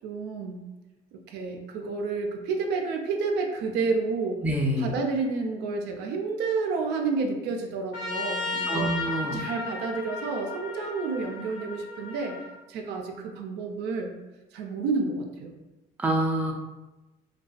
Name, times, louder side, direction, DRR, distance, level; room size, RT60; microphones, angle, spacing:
voice 1, 0.0-0.6 1.1-4.4 4.8-8.9 9.2-12.4 12.7-14.1 14.5-15.6, right 4 dB, 85° right, 3 dB, 0.4 m, -30 dB
voice 2, 4.4-4.9 8.7-9.4 16.0-16.5, right 1 dB, 10° right, -1 dB, 0.4 m, -26 dB
Trumpet, 7.9-12.5, left 3 dB, 85° left, 0.6 m, -34 dB
2.4 x 2.2 x 2.3 m, 1.1 s
cardioid pair, 110°, 17 cm